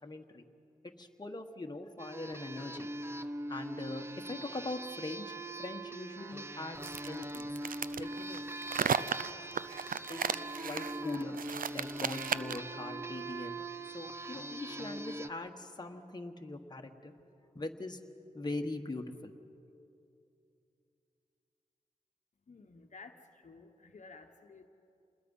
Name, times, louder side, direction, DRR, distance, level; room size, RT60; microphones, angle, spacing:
voice 1, 0.0-0.4 0.8-2.9 3.5-7.5 8.0-8.4 9.0-9.3 10.1-11.4 11.7-17.1 17.5-18.0 18.3-19.3, left 2 dB, 30° left, 3 dB, 1.3 m, -42 dB
sound 1, 2.0-15.3, right 2 dB, 15° right, 0.6 m, -42 dB
sound 2, 6.8-12.7, right 7 dB, 75° right, 0.5 m, -35 dB
voice 2, 22.5-24.7, left 4 dB, 60° left, 5 dB, 1.1 m, -53 dB
28.0 x 20.5 x 5.5 m, 2.7 s
wide cardioid pair, 75°, 14 cm